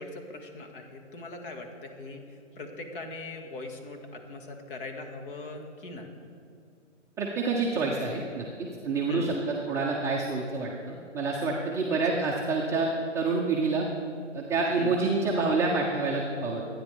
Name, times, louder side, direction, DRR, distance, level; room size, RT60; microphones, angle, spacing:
voice 1, 0.0-6.3 9.1-9.3 11.9-12.2 14.8-15.0, left 2 dB, 45° left, 3 dB, 2.1 m, -41 dB
voice 2, 7.2-13.9 14.3-16.6, right 3 dB, 5° right, -5 dB, 0.7 m, -28 dB
24.0 x 9.9 x 3.6 m, 2.4 s
hypercardioid pair, 140°, 37 cm